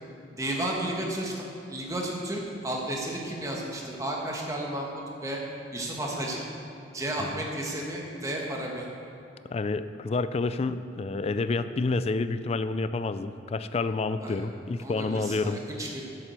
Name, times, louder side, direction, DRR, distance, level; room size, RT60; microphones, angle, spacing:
voice 1, 0.4-5.4 5.7-6.4 6.9-8.9 14.2-14.5 14.8-16.0, right 1 dB, 20° right, -2 dB, 1.4 m, -33 dB
voice 2, 9.5-15.6, left 3 dB, 35° left, 12 dB, 0.3 m, -29 dB
7.7 x 7.5 x 8.1 m, 2.5 s
head